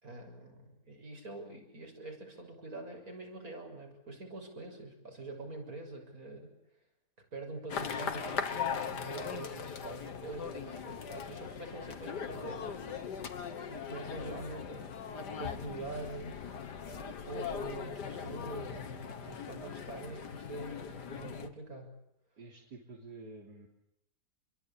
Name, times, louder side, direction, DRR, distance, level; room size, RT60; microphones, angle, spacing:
voice 1, 0.0-6.5 7.3-12.8 13.7-15.0 15.4-16.4 17.3-22.0, right 2 dB, 55° right, 3 dB, 7.2 m, -45 dB
sound 1, 7.7-21.5, left 6 dB, 80° left, 2.2 m, -40 dB
voice 2, 22.4-23.7, right 3 dB, 75° right, 0 dB, 3.8 m, -49 dB
28.0 x 23.0 x 8.7 m, 0.80 s
omnidirectional pair, 1.8 m